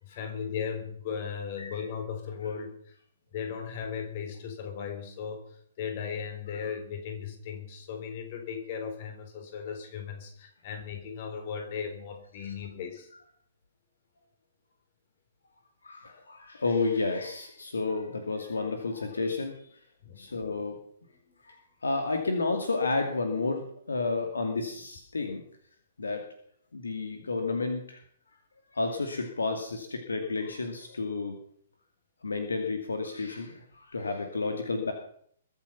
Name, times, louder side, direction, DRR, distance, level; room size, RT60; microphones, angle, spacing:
voice 1, 0.0-2.9 3.3-13.1 20.0-20.3, left 7 dB, 40° left, 5 dB, 4.1 m, -37 dB
voice 2, 15.8-19.6 20.2-20.8 21.4-21.6 21.8-25.4 26.0-26.3 26.7-28.0 28.7-31.4 32.2-34.9, left 3 dB, 70° left, 5 dB, 2.4 m, -31 dB
22.0 x 8.7 x 5.8 m, 0.63 s
figure-of-eight pair, 120°, 0 cm